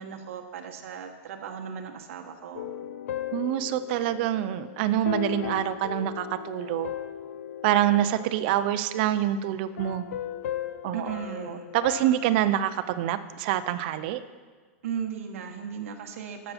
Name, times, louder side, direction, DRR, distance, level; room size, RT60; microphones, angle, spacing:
voice 1, 0.0-2.7 10.9-11.7 14.8-16.5, right 7 dB, 65° right, 4 dB, 1.1 m, -36 dB
sound 1, 2.5-9.2 9.8-12.3, left 10 dB, 80° left, 0.5 m, -37 dB
voice 2, 3.3-6.9 7.6-10.0 10.8-14.2, right 12 dB, 45° right, 13 dB, 0.5 m, -26 dB
12.5 x 6.8 x 4.2 m, 1.5 s
supercardioid pair, 160°, 8 cm